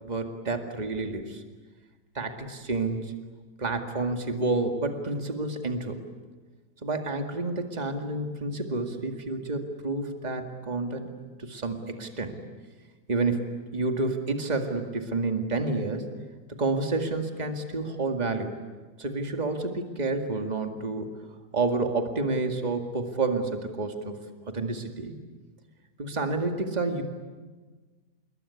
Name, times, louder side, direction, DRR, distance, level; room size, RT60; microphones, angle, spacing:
voice 1, 0.0-1.4 2.2-3.1 3.6-6.0 6.8-11.1 11.4-12.4 13.1-16.1 16.6-18.5 19.0-21.1 21.5-24.2 24.5-25.2 26.0-27.0, right 3 dB, 25° right, 5 dB, 2.2 m, -29 dB
28.0 x 21.5 x 9.8 m, 1.4 s
omnidirectional pair, 1.7 m